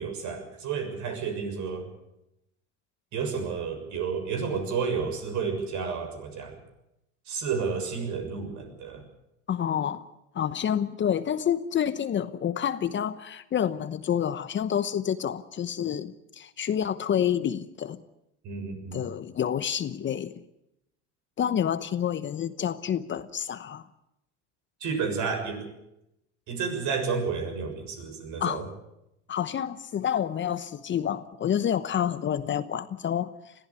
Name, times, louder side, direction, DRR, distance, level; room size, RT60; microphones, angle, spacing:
voice 1, 0.0-1.9 3.1-6.6 7.3-9.0 18.4-19.1 24.8-25.7 26.5-28.6, right 5 dB, 55° right, 6 dB, 6.8 m, -31 dB
voice 2, 9.5-10.1 10.3-18.0 18.9-20.4 21.4-23.9 28.4-28.6 29.3-33.5, left 9 dB, 35° left, 13 dB, 1.0 m, -28 dB
21.0 x 15.0 x 9.8 m, 0.85 s
supercardioid pair, 95°, 35 cm